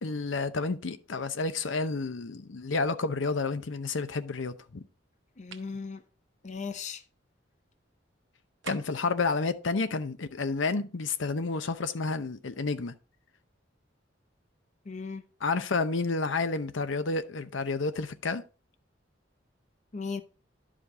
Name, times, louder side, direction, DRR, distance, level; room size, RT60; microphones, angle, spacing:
voice 1, 0.0-4.9 8.7-12.9 15.4-18.4, left 3 dB, 85° left, 0.7 m, -30 dB
voice 2, 5.4-6.0 6.4-7.0 14.8-15.2 19.9-20.2, left 4 dB, 40° left, 0.6 m, -37 dB
sound 1, 5.5-5.8 8.6-9.1, right 7 dB, 70° right, 0.8 m, -43 dB
11.0 x 5.1 x 3.7 m
head